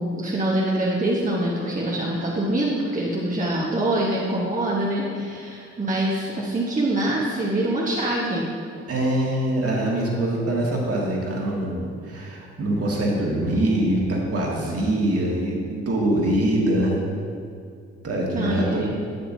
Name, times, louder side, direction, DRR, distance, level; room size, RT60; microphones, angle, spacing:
voice 1, 0.0-8.5 18.3-18.9, right 1 dB, 25° right, -4 dB, 1.2 m, -24 dB
voice 2, 8.9-17.0 18.0-18.8, right 1 dB, 45° right, -3 dB, 1.9 m, -23 dB
8.6 x 8.0 x 2.7 m, 2.3 s
figure-of-eight pair, 40°, 34 cm